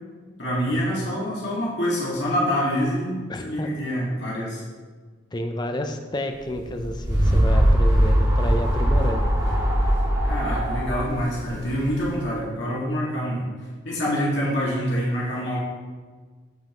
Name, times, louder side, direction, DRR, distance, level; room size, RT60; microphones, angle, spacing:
voice 1, 0.4-4.6 10.2-13.5 13.8-15.6, equal, 70° left, -6 dB, 2.0 m, -26 dB
voice 2, 3.3-3.7 5.3-9.3, left 1 dB, 20° left, 5 dB, 0.6 m, -30 dB
sound 1, 6.6-12.2, equal, 25° right, 2.1 m, -21 dB
13.0 x 5.5 x 3.0 m, 1.5 s
head